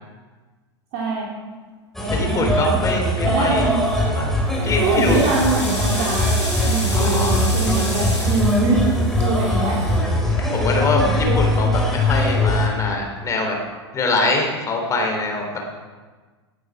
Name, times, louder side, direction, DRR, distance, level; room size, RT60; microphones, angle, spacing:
voice 1, 0.9-1.3 2.0-2.8 3.2-3.8 4.8-6.3 6.6-8.8 9.2-9.8 10.6-11.4, right 3 dB, 45° right, -4 dB, 2.9 m, -24 dB
sound 1, 1.9-12.7, left 1 dB, ahead, 3.2 m, -21 dB
voice 2, 2.1-3.7 4.1-4.3 4.6-5.2 6.9-7.4 9.9-11.0 11.4-13.6 13.9-15.6, left 3 dB, 20° left, 2 dB, 3.6 m, -24 dB
sound 2, 3.7-4.1 4.6-10.9, left 1 dB, 85° left, 3.0 m, -32 dB
18.5 x 10.0 x 4.9 m, 1.4 s
figure-of-eight pair, 90°, 14 cm